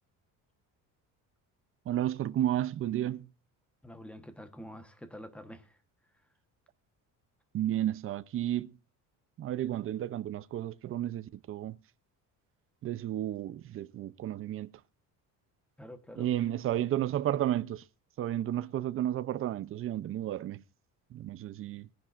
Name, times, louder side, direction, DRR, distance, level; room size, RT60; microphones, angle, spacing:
voice 1, 1.9-3.3 7.5-8.8 9.4-11.8 12.8-14.7 16.2-17.8 18.2-20.6 21.1-21.9, right 12 dB, 40° right, 0.6 m, -32 dB
voice 2, 3.8-5.8 15.8-16.3, equal, 5° left, 1.1 m, -47 dB
20.0 x 10.0 x 2.5 m
cardioid pair, 160°, 35 cm